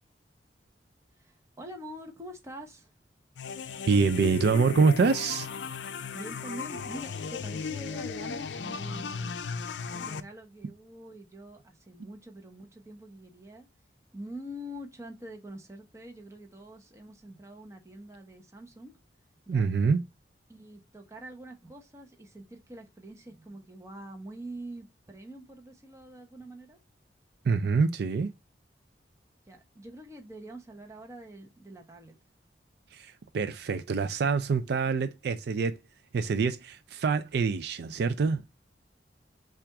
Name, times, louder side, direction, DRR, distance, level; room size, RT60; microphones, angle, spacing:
voice 1, 1.2-2.9 6.1-9.4 9.9-13.7 14.1-18.9 19.5-19.7 20.5-26.8 29.5-32.2, right 1 dB, 15° right, 0.9 m, -45 dB
sound 1, 3.4-10.2, left 5 dB, 85° left, 0.4 m, -36 dB
voice 2, 3.9-5.5 19.5-20.1 27.4-28.3 32.9-35.8 36.1-38.4, right 5 dB, 65° right, 0.4 m, -26 dB
5.8 x 2.5 x 3.4 m
head